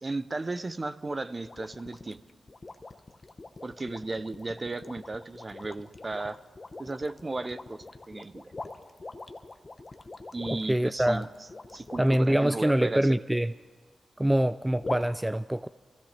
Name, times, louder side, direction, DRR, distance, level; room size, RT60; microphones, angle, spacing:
voice 1, 0.0-2.2 3.6-6.4 6.8-8.5 10.3-11.3 11.7-13.1, right 2 dB, 40° right, 13 dB, 0.7 m, -35 dB
sound 1, 1.4-12.4 14.8-15.1, left 3 dB, 40° left, 1.0 m, -43 dB
voice 2, 10.7-11.2 12.0-13.5 14.2-15.7, right 1 dB, 10° right, 14 dB, 0.3 m, -24 dB
23.5 x 16.0 x 3.3 m, 1.5 s
cardioid pair, 50°, 0 cm